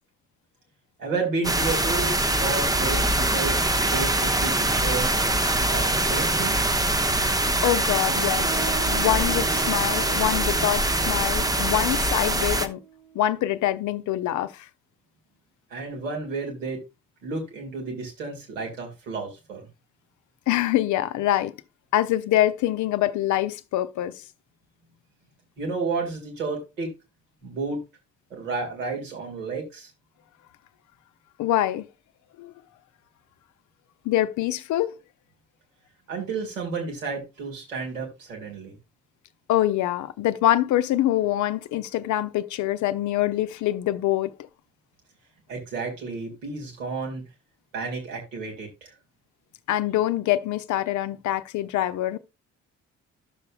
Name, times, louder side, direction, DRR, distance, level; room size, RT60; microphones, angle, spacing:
voice 1, 1.0-3.6 3.9-5.2 5.7-6.6 15.7-16.8 17.2-19.7 25.6-26.9 27.4-27.8 28.3-29.9 36.1-38.8 45.5-47.2 47.7-48.9, right 4 dB, 80° right, 2.0 m, -31 dB
sound 1, 1.4-12.7, right 1 dB, 10° right, 0.7 m, -23 dB
voice 2, 7.6-12.8 13.1-14.7 20.5-21.5 21.9-24.2 31.4-31.9 32.4-32.5 34.0-34.9 39.5-44.3 49.7-52.2, left 13 dB, 50° left, 0.6 m, -25 dB
sound 2, 8.0-13.4, right 7 dB, 50° right, 1.2 m, -39 dB
11.5 x 6.7 x 2.3 m
figure-of-eight pair, 40°, 38 cm